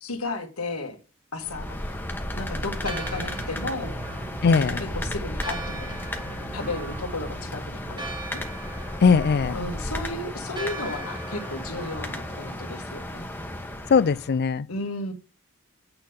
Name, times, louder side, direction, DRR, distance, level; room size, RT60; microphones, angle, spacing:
voice 1, 0.0-1.0 1.3-1.8 2.4-3.9 4.5-6.0 6.5-8.4 9.5-13.2 14.7-15.1, left 2 dB, 80° left, 1.8 m, -34 dB
sound 1, 1.4-14.4, left 1 dB, 10° left, 1.1 m, -34 dB
Church bell, 2.5-12.7, right 2 dB, 20° right, 1.4 m, -41 dB
sound 2, 2.6-9.9, right 3 dB, 70° right, 0.7 m, -42 dB
voice 2, 4.4-4.8 9.0-9.6 13.9-14.7, left 5 dB, 50° left, 0.4 m, -20 dB
8.8 x 3.9 x 7.0 m
head